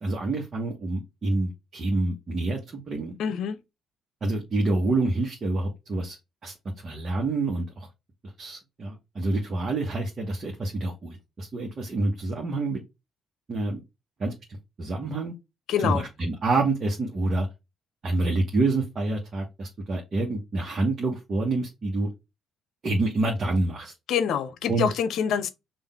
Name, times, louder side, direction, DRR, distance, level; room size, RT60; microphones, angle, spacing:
voice 1, 0.0-3.2 4.2-6.5 6.8-7.9 8.2-12.8 13.5-13.8 14.2-14.3 14.8-15.3 15.8-17.5 18.0-22.1 22.8-23.9 24.7-24.9, right 2 dB, 40° right, 1.4 m, -27 dB
voice 2, 3.2-3.6 15.7-16.0 24.1-25.5, left 7 dB, 60° left, 0.6 m, -25 dB
5.5 x 2.6 x 3.4 m
figure-of-eight pair, 45°, 0 cm